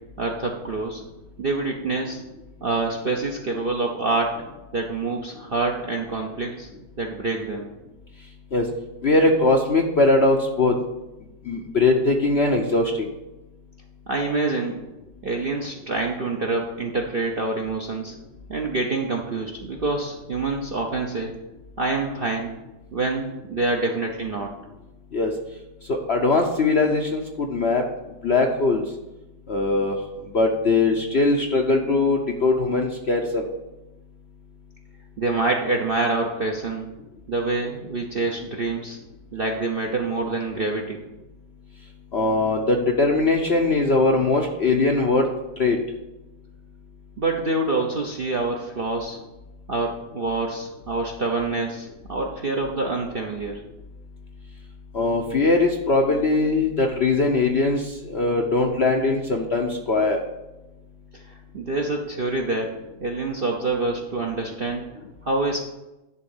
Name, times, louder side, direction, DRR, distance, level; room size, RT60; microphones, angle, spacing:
voice 1, 0.2-1.0 1.4-2.2 2.6-4.4 4.7-6.7 7.0-7.7 14.1-14.8 15.2-18.1 18.5-21.3 21.8-22.5 22.9-24.5 35.2-36.9 37.3-39.0 39.3-41.0 47.2-49.2 49.7-53.6 61.1-61.2 61.5-64.8 65.2-65.6, right 3 dB, 50° right, 1 dB, 0.7 m, -26 dB
voice 2, 9.0-10.7 11.5-13.1 25.1-25.3 25.9-27.9 28.2-28.8 29.5-30.0 30.3-33.5 42.1-45.3 45.6-45.8 54.9-60.2, left 3 dB, 50° left, 2 dB, 0.8 m, -21 dB
11.0 x 3.8 x 7.1 m, 1.0 s
omnidirectional pair, 1.9 m